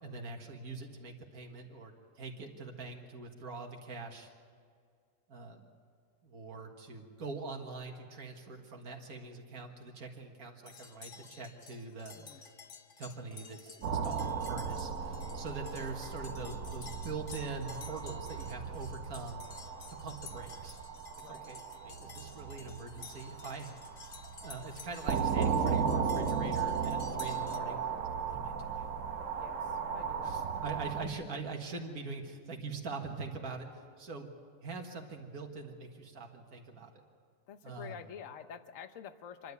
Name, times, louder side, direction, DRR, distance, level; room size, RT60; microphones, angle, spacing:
voice 1, 0.0-4.3 5.3-5.7 6.2-12.5 13.0-19.4 19.9-20.8 21.3-23.7 24.4-27.8 28.2-28.9 30.2-34.3 34.6-37.0 37.6-38.0, right 4 dB, 80° right, 1 dB, 2.2 m, -43 dB
sound 1, 10.7-27.6, left 5 dB, 40° left, 1.0 m, -53 dB
sound 2, 13.8-31.0, right 6 dB, 60° right, 1.5 m, -36 dB
voice 2, 29.4-30.8 37.5-39.5, left 8 dB, 60° left, 10 dB, 1.2 m, -49 dB
27.0 x 11.5 x 8.3 m, 2.2 s
omnidirectional pair, 1.5 m